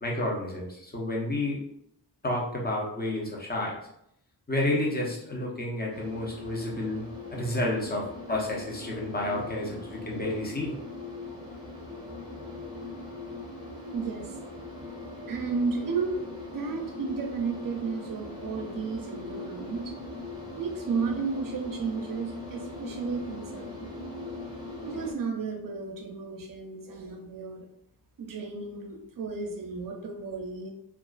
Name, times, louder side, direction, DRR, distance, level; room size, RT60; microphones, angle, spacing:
voice 1, 0.0-1.6 2.2-3.7 4.5-7.0 7.3-10.8, left 1 dB, 25° left, -2 dB, 0.7 m, -30 dB
sound 1, 5.9-25.1, left 2 dB, 10° right, 0.8 m, -41 dB
voice 2, 13.9-14.8 15.3-19.9 20.6-23.9 24.8-27.7 28.2-30.7, right 5 dB, 55° right, 3 dB, 0.6 m, -33 dB
2.4 x 2.3 x 2.3 m, 0.75 s
cardioid pair, 60°, 41 cm